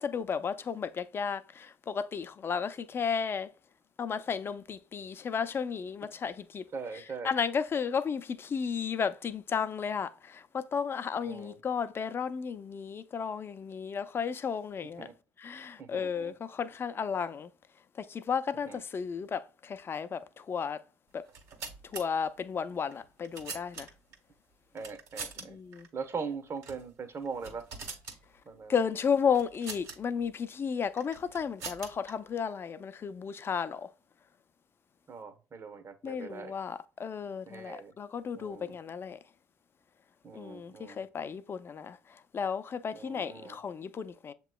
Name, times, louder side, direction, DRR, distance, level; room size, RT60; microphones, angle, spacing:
voice 1, 0.0-3.5 4.0-6.7 7.2-15.1 15.4-17.5 18.0-20.8 21.1-21.2 21.8-23.9 25.5-25.9 28.7-33.9 36.0-39.2 40.3-44.3, left 6 dB, 35° left, 0.5 m, -33 dB
voice 2, 6.7-7.3 11.2-11.6 15.0-15.1 15.8-16.3 18.6-18.8 24.7-25.6 25.9-27.7 28.5-28.8 35.1-36.5 37.5-37.9 38.3-38.8 40.2-41.0 42.9-43.6, right 5 dB, 40° right, 1.0 m, -41 dB
sound 1, 21.2-22.0 22.9-24.1 24.8-25.4 25.7-25.9 26.6-26.8 27.2-28.2 29.3-30.0 31.0-32.1, right 5 dB, 65° right, 1.6 m, -43 dB
7.3 x 3.0 x 2.2 m
hypercardioid pair, 65°, 7 cm